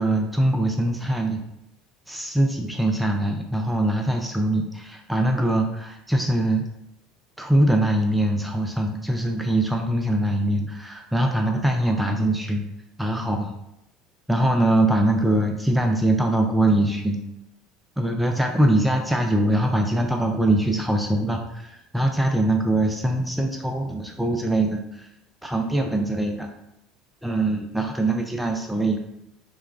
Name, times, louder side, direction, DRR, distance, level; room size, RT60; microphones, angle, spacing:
voice 1, 0.0-1.4 2.1-6.7 7.4-12.7 13.0-13.5 14.3-17.2 18.0-25.1 25.4-26.5 27.2-29.0, right 1 dB, 5° right, 3 dB, 0.5 m, -22 dB
4.7 x 2.2 x 2.5 m, 0.82 s
hypercardioid pair, 80°, 0 cm